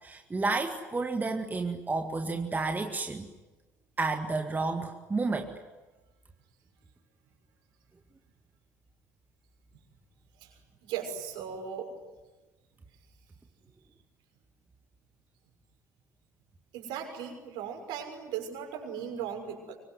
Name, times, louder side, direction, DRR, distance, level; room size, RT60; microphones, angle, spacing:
voice 1, 0.0-3.3 4.0-5.5, right 3 dB, 20° right, 5 dB, 2.0 m, -31 dB
voice 2, 10.4-11.9 16.7-19.8, right 8 dB, 55° right, 3 dB, 6.3 m, -38 dB
25.0 x 24.5 x 9.7 m, 1.2 s
figure-of-eight pair, 55°, 9 cm